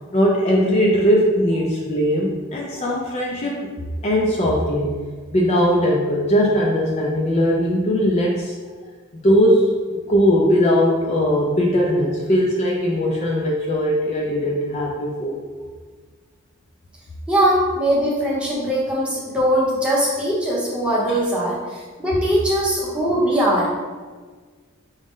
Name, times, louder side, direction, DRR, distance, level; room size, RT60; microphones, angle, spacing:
voice 1, 0.1-3.7 4.0-4.9 5.3-8.6 9.1-15.4, equal, 30° left, -2 dB, 0.4 m, -19 dB
voice 2, 17.3-23.8, equal, 5° right, -7 dB, 0.8 m, -21 dB
4.9 x 2.1 x 3.5 m, 1.5 s
head